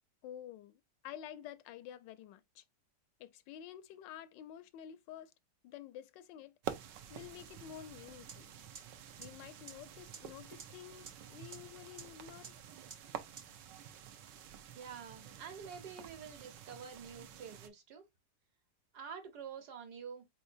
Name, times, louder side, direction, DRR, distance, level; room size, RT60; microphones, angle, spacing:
voice 1, 0.2-2.6 3.2-5.3 5.6-6.6 7.1-8.5 9.2-12.6, left 10 dB, 85° left, 1.3 m, -50 dB
sound 1, 6.6-17.7, right 10 dB, 85° right, 1.4 m, -49 dB
sound 2, 8.3-8.4 8.7-8.8 9.2-9.3 9.7-9.8 10.1-10.2 10.6-10.7 11.1-11.2 11.5-11.6 12.0-12.1 12.4-12.5 12.9-13.0 13.4-13.5, right 5 dB, 40° right, 0.6 m, -47 dB
voice 2, 14.7-18.1 18.9-20.2, right 6 dB, 65° right, 1.6 m, -48 dB
4.3 x 3.8 x 2.5 m
omnidirectional pair, 1.9 m